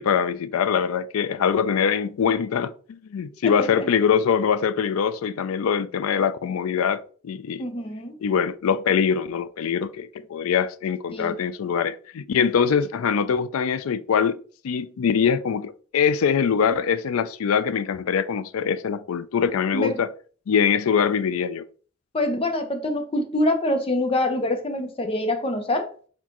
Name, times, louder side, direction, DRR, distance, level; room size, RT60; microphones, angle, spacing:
voice 1, 0.0-7.6 8.2-14.4 14.6-20.1 20.5-21.6, left 7 dB, 85° left, 0.4 m, -23 dB
voice 2, 3.4-3.9 7.6-8.2 11.1-11.4 19.7-20.0 22.1-25.9, left 1 dB, 25° left, 0.7 m, -25 dB
4.3 x 4.1 x 2.9 m
head